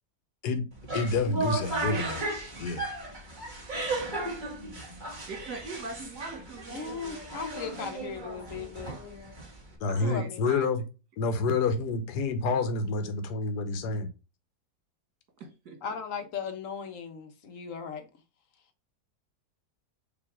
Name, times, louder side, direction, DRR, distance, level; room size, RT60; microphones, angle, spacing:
sound 1, 0.7-9.8, right 2 dB, 30° right, 1.6 m, -35 dB
voice 1, 0.9-2.2 2.6-2.8 4.1-4.2 4.5-5.0 6.7-6.8 9.8-10.8 11.2-14.1, left 3 dB, 75° left, 1.4 m, -29 dB
voice 2, 5.3-7.2 9.9-10.7 11.6-11.7 15.4-15.8, right 3 dB, 70° right, 2.1 m, -42 dB
voice 3, 6.7-9.0 10.0-10.4 15.8-18.0, left 6 dB, 55° left, 1.2 m, -37 dB
7.1 x 3.1 x 4.8 m
omnidirectional pair, 1.8 m